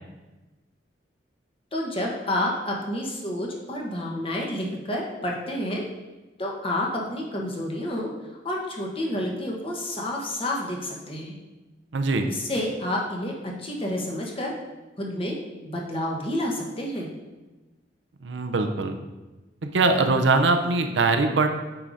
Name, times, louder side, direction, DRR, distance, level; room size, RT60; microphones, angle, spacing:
voice 1, 1.7-5.9 6.4-8.1 8.4-11.4 12.2-14.5 15.0-15.3 15.6-17.1, left 1 dB, 30° left, -1 dB, 1.1 m, -29 dB
voice 2, 11.9-12.3 18.2-19.0 19.6-21.5, right 3 dB, 80° right, 6 dB, 0.6 m, -22 dB
8.8 x 4.8 x 2.6 m, 1.1 s
head